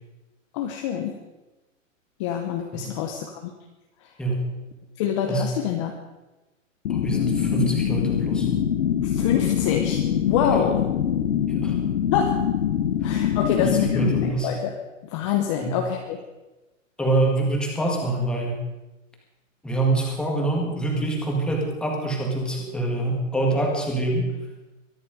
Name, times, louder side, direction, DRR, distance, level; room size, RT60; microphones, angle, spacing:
voice 1, 0.5-1.2 2.2-3.5 4.0-4.1 5.0-5.9 9.0-10.8 12.1-12.4 13.0-16.2, left 8 dB, 25° left, 3 dB, 0.9 m, -26 dB
sound 1, 6.8-14.3, left 9 dB, 60° left, 1.4 m, -24 dB
voice 2, 6.9-8.5 10.5-10.6 11.5-11.8 13.6-14.5 15.6-15.8 17.0-18.6 19.6-24.3, right 2 dB, ahead, 0 dB, 1.8 m, -25 dB
23.0 x 10.5 x 5.1 m, 1.1 s
hypercardioid pair, 165°, 39 cm